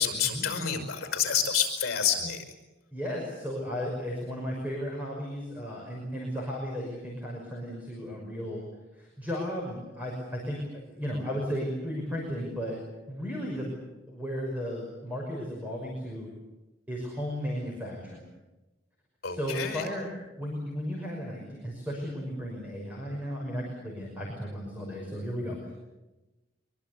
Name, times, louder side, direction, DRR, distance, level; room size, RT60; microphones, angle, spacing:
voice 1, 0.0-2.4 19.2-19.9, left 7 dB, 50° left, 7 dB, 5.5 m, -28 dB
voice 2, 2.9-8.6 8.9-10.6 10.8-12.8 13.1-13.8 14.1-16.3 16.9-18.2 19.3-20.1 20.4-25.7, equal, 10° right, -2 dB, 5.8 m, -34 dB
23.5 x 23.5 x 8.2 m, 1.1 s
head